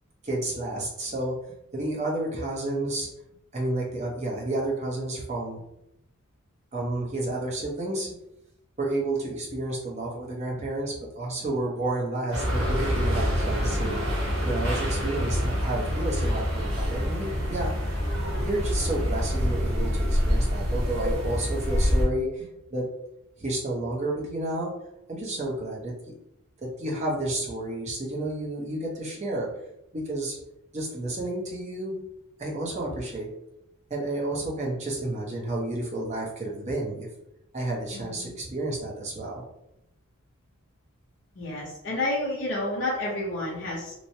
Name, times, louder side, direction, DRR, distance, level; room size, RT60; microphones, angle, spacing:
voice 1, 0.2-1.3 1.7-3.1 3.5-5.6 6.7-8.1 8.8-14.0 14.4-18.0 18.4-22.9 23.4-24.7 25.1-26.1 26.6-29.5 29.9-30.4 30.7-32.0 32.4-33.3 33.9-37.1 37.5-39.4, right 1 dB, 35° right, -3 dB, 0.7 m, -31 dB
sound 1, 12.3-22.1, equal, 90° right, 0.9 m, -26 dB
voice 2, 37.9-38.3 41.3-43.9, left 1 dB, 60° left, -6 dB, 0.8 m, -30 dB
3.0 x 2.0 x 2.7 m, 0.83 s
head